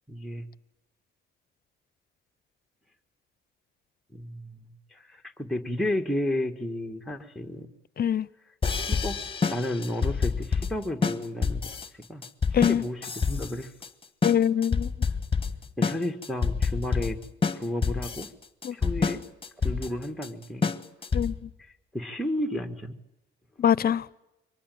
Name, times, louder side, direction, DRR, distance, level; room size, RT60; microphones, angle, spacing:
voice 1, 0.1-0.5 4.1-7.7 8.7-9.2 9.5-11.6 11.9-12.3 12.7-13.7 15.8-17.2 17.5-18.3 18.7-19.2 19.6-20.7 21.6-23.0, left 1 dB, ahead, 1.8 m, -32 dB
voice 2, 8.0-8.3 12.5-12.8 14.2-14.9 18.6-18.8 21.1-21.5 23.6-24.1, left 9 dB, 50° left, 0.8 m, -23 dB
sound 1, 8.6-21.5, left 5 dB, 25° left, 1.5 m, -28 dB
24.0 x 19.0 x 9.3 m
cardioid pair, 90°, 20 cm